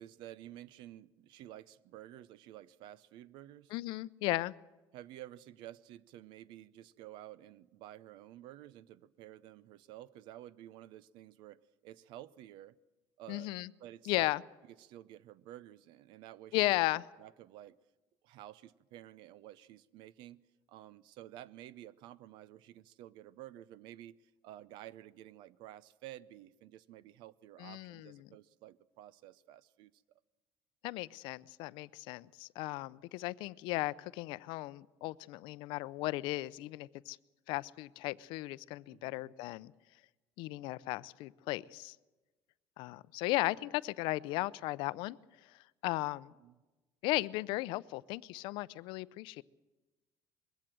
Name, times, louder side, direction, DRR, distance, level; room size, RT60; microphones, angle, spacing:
voice 1, 0.0-3.7 4.9-12.8 13.2-13.5 13.8-14.3 14.8-16.6 17.2-17.8 18.2-20.4 20.7-30.0 38.9-39.3 46.4-46.6, right 13 dB, 70° right, 0.7 m, -52 dB
voice 2, 3.7-4.5 13.3-13.7 14.0-14.4 16.5-17.0 27.6-28.3 30.8-37.2 37.5-39.7 40.4-42.0 42.8-45.5 45.8-46.3 47.0-49.4, left 19 dB, 75° left, 0.6 m, -36 dB
21.5 x 16.5 x 7.6 m
cardioid pair, 165°, 8 cm